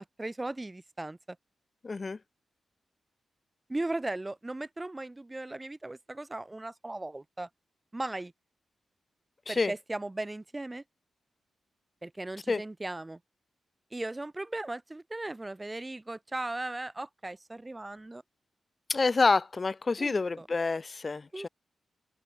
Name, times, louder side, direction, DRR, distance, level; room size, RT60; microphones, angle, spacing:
voice 1, 0.2-1.4 3.7-7.5 7.9-8.3 9.5-10.8 12.0-13.2 13.9-18.2 20.0-20.5 21.3-21.5, right 2 dB, 20° right, 1.0 m, -37 dB
voice 2, 1.8-2.2 9.5-9.7 12.5-12.6 18.9-21.5, left 3 dB, 40° left, 1.4 m, -28 dB
cardioid pair, 80°, 0 cm